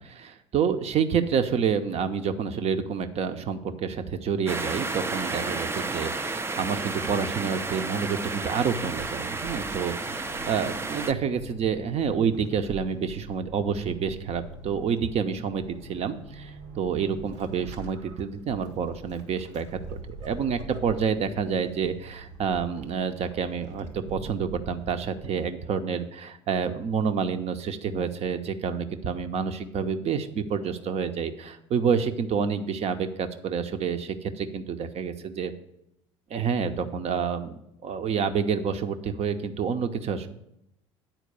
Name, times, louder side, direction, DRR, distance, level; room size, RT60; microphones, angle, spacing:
voice 1, 0.0-19.8 20.1-35.5 36.3-40.3, right 6 dB, 45° right, 9 dB, 0.8 m, -28 dB
sound 1, 4.5-11.1, right 3 dB, 15° right, 0.5 m, -32 dB
Vehicle / Accelerating revving vroom / Squeak, 8.7-25.6, right 3 dB, 75° right, 1.1 m, -45 dB
9.1 x 4.5 x 6.7 m, 0.80 s
hypercardioid pair, 65°, 15 cm